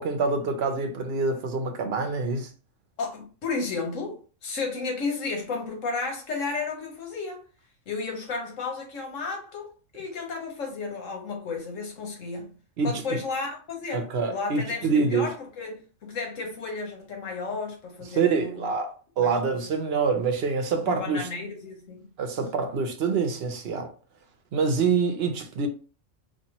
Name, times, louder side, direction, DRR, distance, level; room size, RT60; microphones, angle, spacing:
voice 1, 0.0-2.5 12.8-13.2 13.9-15.3 18.1-21.3 22.2-23.9 24.5-25.7, right 4 dB, 60° right, 0.9 m, -26 dB
voice 2, 3.0-7.4 7.9-12.6 12.8-18.7 19.2-19.6 20.9-22.0, left 4 dB, 85° left, 1.4 m, -33 dB
4.2 x 2.6 x 2.8 m
omnidirectional pair, 1.3 m